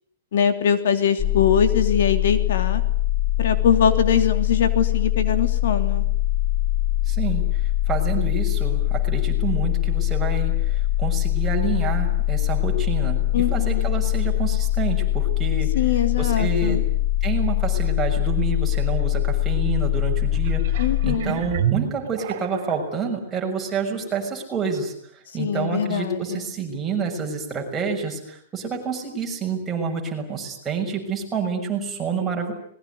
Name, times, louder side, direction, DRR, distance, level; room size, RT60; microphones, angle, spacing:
voice 1, 0.3-2.8 3.4-6.0 13.3-13.9 15.7-16.8 20.8-21.4 25.4-26.5, left 8 dB, 65° left, 9 dB, 3.0 m, -22 dB
sound 1, 1.2-21.2, left 14 dB, 10° left, 1.3 m, -22 dB
voice 2, 7.0-15.7 16.2-16.8 17.2-32.5, right 5 dB, 10° right, 0 dB, 6.5 m, -28 dB
sound 2, 20.2-22.9 23.5-23.6, right 11 dB, 55° right, 2.0 m, -29 dB
26.0 x 21.5 x 9.6 m, 0.66 s
hypercardioid pair, 160°, 0 cm